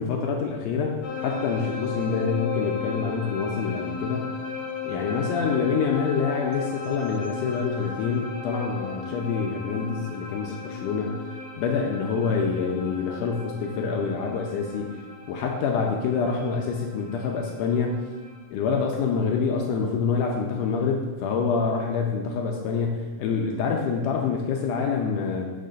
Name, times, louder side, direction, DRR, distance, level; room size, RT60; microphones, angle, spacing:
voice 1, 0.0-4.3 4.8-11.2 11.6-14.9 15.3-18.0 18.5-25.5, left 5 dB, 85° left, 1 dB, 1.9 m, -26 dB
sound 1, 1.0-18.5, left 5 dB, 65° left, 2.0 m, -36 dB
12.0 x 5.7 x 2.6 m, 1.3 s
omnidirectional pair, 4.3 m